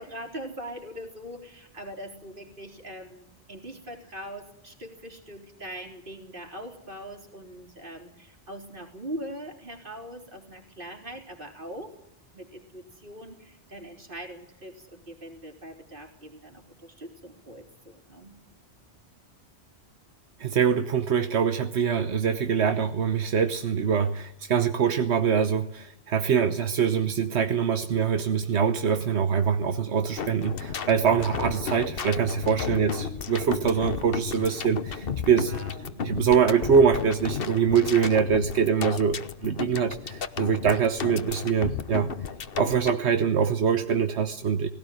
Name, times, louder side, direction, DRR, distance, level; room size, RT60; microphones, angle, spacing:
voice 1, 0.0-12.0 12.3-18.4 32.6-33.2 35.4-35.9, right 1 dB, 50° right, 3 dB, 4.0 m, -41 dB
voice 2, 20.4-35.5 35.8-42.1 42.6-44.7, right 7 dB, 85° right, 8 dB, 1.3 m, -24 dB
sound 1, 30.2-42.9, left 7 dB, 60° left, 1.2 m, -33 dB
19.0 x 17.0 x 9.2 m, 0.77 s
omnidirectional pair, 1.1 m